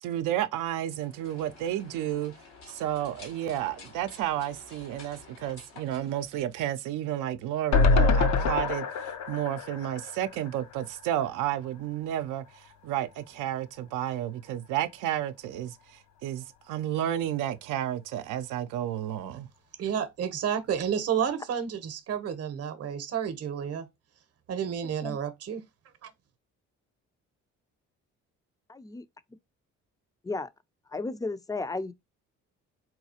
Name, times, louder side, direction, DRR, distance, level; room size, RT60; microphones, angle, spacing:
voice 1, 0.0-2.3 2.7-19.5, right 12 dB, 75° right, 0.5 m, -31 dB
sound 1, 0.8-7.0, left 3 dB, 90° left, 1.5 m, -51 dB
sound 2, 7.7-11.0 11.3-11.4 11.7-11.8, left 4 dB, 60° left, 0.6 m, -25 dB
voice 2, 19.8-23.9 24.5-25.6 26.0-26.1, right 8 dB, 50° right, 0.8 m, -31 dB
voice 3, 28.7-29.0 30.2-30.5 30.9-31.9, left 3 dB, 10° left, 0.4 m, -33 dB
4.0 x 2.3 x 2.8 m
supercardioid pair, 60°, 32 cm